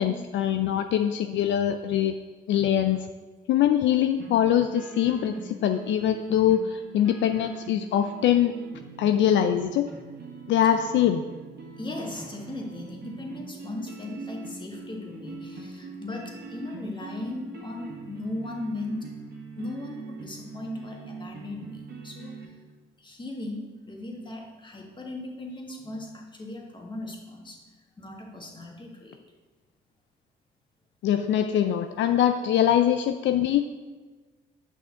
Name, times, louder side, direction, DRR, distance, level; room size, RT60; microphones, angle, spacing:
voice 1, 0.0-2.1 2.5-3.1 3.5-8.5 9.0-9.9 10.5-11.2 31.0-33.6, left 10 dB, 70° left, 8 dB, 0.4 m, -23 dB
sound 1, 4.2-22.5, right 4 dB, 60° right, 1.5 m, -42 dB
voice 2, 11.8-19.1 19.6-22.5 23.0-27.6 28.0-29.2, left 2 dB, 25° left, 0 dB, 1.6 m, -38 dB
8.6 x 5.7 x 3.8 m, 1.3 s
cardioid pair, 90°, 20 cm